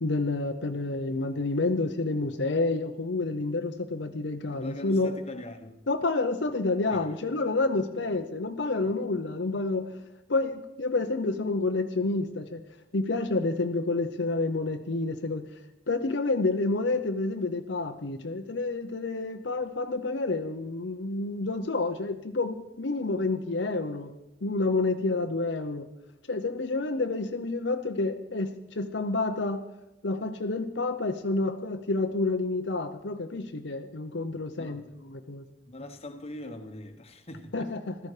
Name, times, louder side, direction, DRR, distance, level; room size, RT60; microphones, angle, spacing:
voice 1, 0.0-5.2 5.9-10.0 10.3-12.6 12.9-15.6 15.9-24.1 24.4-25.9 26.3-29.6 30.0-35.5 37.5-38.0, left 3 dB, 70° left, 0.8 m, -29 dB
voice 2, 4.5-5.8 6.9-7.0 7.4-7.5 7.9-8.0 8.8-9.0 34.6-34.8 35.7-37.7, left 1 dB, 35° left, 1.2 m, -42 dB
15.0 x 13.5 x 4.9 m
head